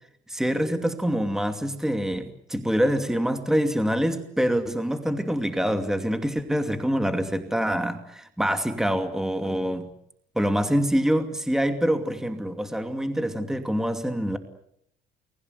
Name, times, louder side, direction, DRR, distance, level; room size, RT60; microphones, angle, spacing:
voice 1, 0.3-9.9 10.4-14.4, equal, 5° right, 7 dB, 2.6 m, -25 dB
29.0 x 21.0 x 8.1 m, 0.73 s
cardioid pair, 110°, 17 cm